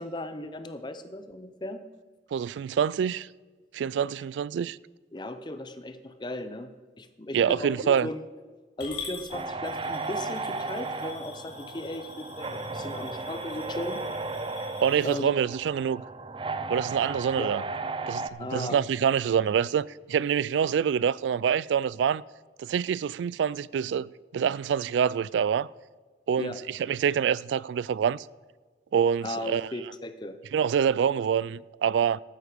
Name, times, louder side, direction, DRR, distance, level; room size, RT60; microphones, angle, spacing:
voice 1, 0.0-1.8 5.1-6.7 7.0-8.2 8.8-14.0 15.0-15.3 17.4-17.5 18.4-18.8 26.4-26.6 29.2-30.4, left 1 dB, 25° left, 0.7 m, -36 dB
voice 2, 2.3-3.3 3.7-4.8 7.3-8.1 14.8-16.0 16.7-17.6 18.1-22.2 22.6-25.7 26.3-26.5 26.9-28.2 28.9-29.7 30.5-32.2, right 8 dB, 90° right, 0.3 m, -26 dB
Coin (dropping) / Glass, 8.8-15.2, left 5 dB, 75° left, 3.3 m, -45 dB
sound 1, 9.3-18.3, right 3 dB, 30° right, 0.5 m, -35 dB
13.0 x 9.3 x 5.0 m
head